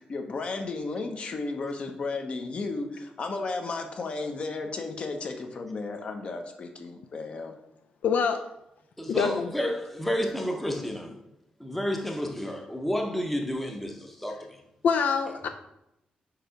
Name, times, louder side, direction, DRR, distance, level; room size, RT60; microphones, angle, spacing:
voice 1, 0.0-7.5, left 3 dB, 45° left, 0.8 m, -34 dB
voice 2, 8.0-8.4 9.1-9.5 14.8-15.5, left 6 dB, 75° left, 0.4 m, -25 dB
voice 3, 9.0-11.2 11.6-14.6, equal, 5° left, 0.7 m, -30 dB
4.8 x 4.6 x 5.0 m
wide cardioid pair, 155°, 3 cm